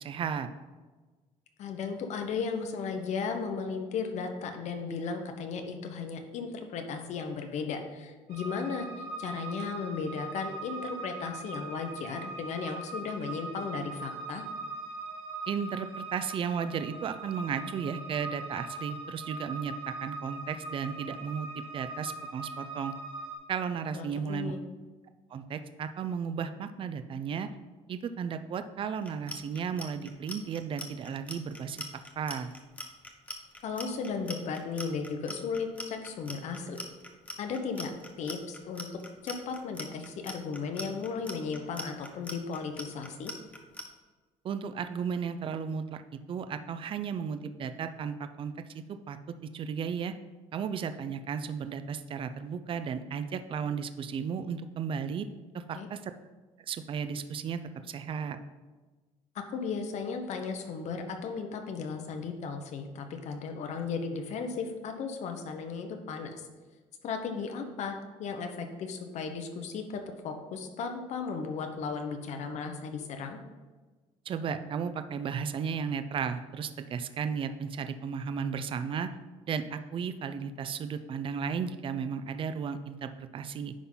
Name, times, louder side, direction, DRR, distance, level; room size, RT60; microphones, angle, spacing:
voice 1, 0.0-0.5 15.5-21.5 21.7-22.9 23.5-24.5 25.3-27.5 27.9-31.9 32.2-32.5 44.4-46.0 46.3-50.1 50.5-55.3 55.5-56.0 56.7-58.4 74.3-79.1 79.5-83.7, right 6 dB, 45° right, 10 dB, 0.5 m, -34 dB
voice 2, 1.6-14.4 23.9-24.6 33.6-36.8 37.4-37.9 38.2-38.9 39.2-43.3 55.7-55.9 59.3-66.4 67.0-73.4, left 5 dB, 60° left, 5 dB, 1.1 m, -35 dB
sound 1, 8.3-23.3, right 3 dB, 80° right, 2.7 m, -41 dB
Clock, 29.0-43.8, left 1 dB, 10° left, 1.0 m, -42 dB
10.0 x 3.8 x 5.7 m, 1.3 s
cardioid pair, 120°, 13 cm